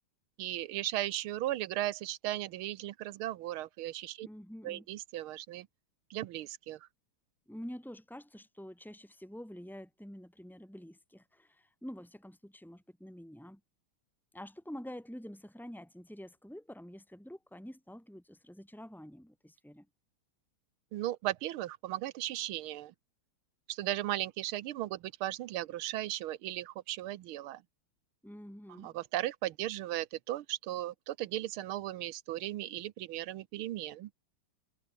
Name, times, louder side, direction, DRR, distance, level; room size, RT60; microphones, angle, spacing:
voice 1, 0.4-4.3 4.6-5.7 6.1-6.9 20.9-22.9 23.7-27.6 28.8-34.1, right 14 dB, 90° right, 1.7 m, -36 dB
voice 2, 4.2-4.9 7.5-13.6 14.3-19.9 28.2-29.0, equal, ahead, 6.9 m, -47 dB
omnidirectional pair, 2.3 m